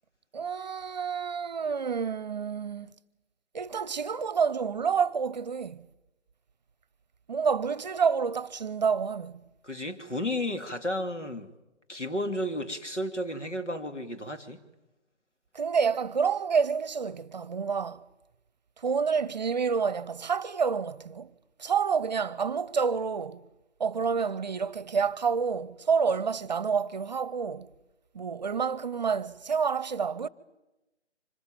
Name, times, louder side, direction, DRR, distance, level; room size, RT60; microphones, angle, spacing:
voice 1, 0.3-2.9 3.5-5.9 7.3-9.4 15.5-18.0 18.8-21.3 21.6-23.4 23.8-27.7 28.1-30.3, right 6 dB, 40° right, 0.8 m, -28 dB
voice 2, 9.6-11.5 11.9-14.6, left 1 dB, 90° left, 2.9 m, -32 dB
25.5 x 19.5 x 9.0 m
figure-of-eight pair, 150°, 35 cm